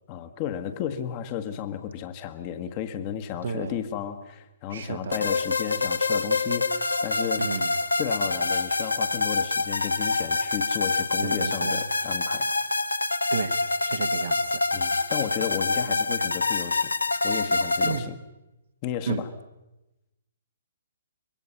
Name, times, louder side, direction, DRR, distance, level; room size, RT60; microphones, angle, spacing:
voice 1, 0.1-7.5 8.0-12.5 14.7-16.9 17.2-18.2 18.8-19.3, left 9 dB, 30° left, 9 dB, 1.5 m, -33 dB
voice 2, 3.4-3.8 4.7-5.3 7.3-7.7 11.2-11.8 13.3-13.6 13.8-14.6 15.8-16.0 17.8-18.1 19.1-19.3, right 5 dB, 55° right, 10 dB, 1.5 m, -32 dB
sound 1, 5.1-18.0, left 3 dB, 80° left, 1.3 m, -26 dB
26.5 x 23.5 x 5.7 m, 0.99 s
figure-of-eight pair, 125°, 0 cm